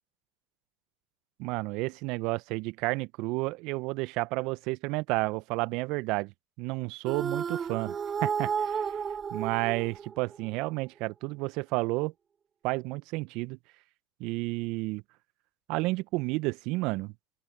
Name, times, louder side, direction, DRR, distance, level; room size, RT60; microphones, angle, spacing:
voice 1, 1.4-6.3 6.6-7.9 8.2-8.8 9.3-12.1 12.6-13.6 14.2-15.0 15.7-17.1, right 23 dB, 60° right, 1.1 m, -31 dB
sound 1, 7.0-10.5, right 7 dB, 35° right, 5.6 m, -32 dB
open air
hypercardioid pair, 70°, 0 cm